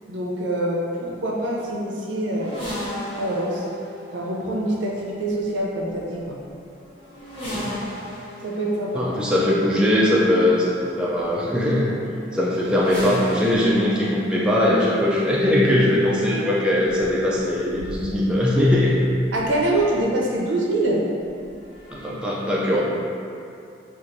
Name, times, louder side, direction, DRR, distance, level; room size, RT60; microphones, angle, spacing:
voice 1, 0.1-2.6 3.2-3.6 4.1-6.4 8.4-9.0 19.3-21.0, right 1 dB, 80° right, -3 dB, 0.6 m, -25 dB
sound 1, 2.3-20.1 21.2-22.1, equal, 30° left, 0.8 m, -38 dB
voice 2, 8.9-11.9 12.3-19.0 21.9-22.8, left 1 dB, 5° right, -6 dB, 0.3 m, -20 dB
4.5 x 2.5 x 2.6 m, 2.5 s
head